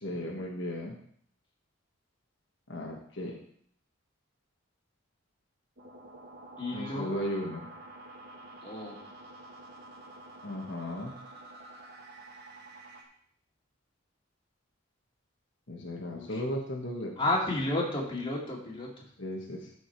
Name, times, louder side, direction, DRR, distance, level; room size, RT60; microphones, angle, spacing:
voice 1, 0.0-1.0 2.7-3.4 6.7-7.7 10.4-11.2 15.7-17.1 19.2-19.7, left 1 dB, 60° left, -1 dB, 1.3 m, -36 dB
sound 1, 5.8-13.0, right 2 dB, 50° right, 1.6 m, -48 dB
voice 2, 6.6-7.1 8.6-9.0 16.1-16.4 17.2-19.1, left 2 dB, 25° left, -3 dB, 2.3 m, -32 dB
13.0 x 5.1 x 4.5 m, 0.64 s
head